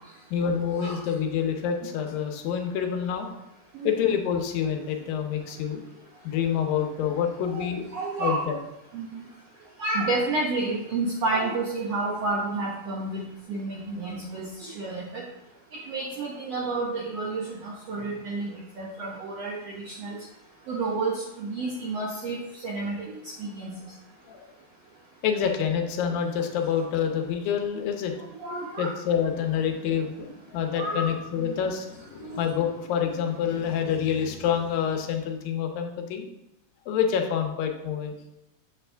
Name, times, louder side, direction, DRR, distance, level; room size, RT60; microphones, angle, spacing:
voice 1, 0.3-3.3 3.8-5.8 6.2-7.9 8.2-8.6 24.3-24.5 25.2-28.1 28.8-36.3 36.9-38.1, left 8 dB, 85° left, 4 dB, 2.6 m, -27 dB
voice 2, 7.9-8.4 8.9-9.2 9.8-15.2 15.9-20.2 20.7-22.4 22.6-23.1 23.4-23.8 28.4-28.9 30.5-31.1 31.4-31.5 32.2-32.4, right 3 dB, 65° right, -3 dB, 1.7 m, -30 dB
7.3 x 7.2 x 3.4 m, 0.89 s
omnidirectional pair, 4.0 m